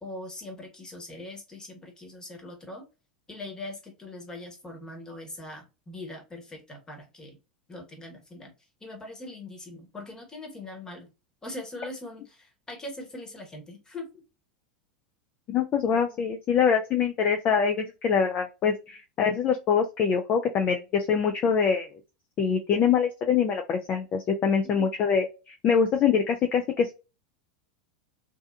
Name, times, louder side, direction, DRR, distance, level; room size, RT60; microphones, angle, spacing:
voice 1, 0.0-2.9 3.3-7.4 7.7-8.5 8.8-11.1 11.4-14.1 16.1-16.2 24.6-24.9, left 2 dB, 15° left, 2 dB, 1.1 m, -41 dB
voice 2, 15.5-21.9 22.4-26.9, left 6 dB, 35° left, 5 dB, 0.4 m, -24 dB
2.6 x 2.3 x 2.3 m, 0.29 s
hypercardioid pair, 90°, 4 cm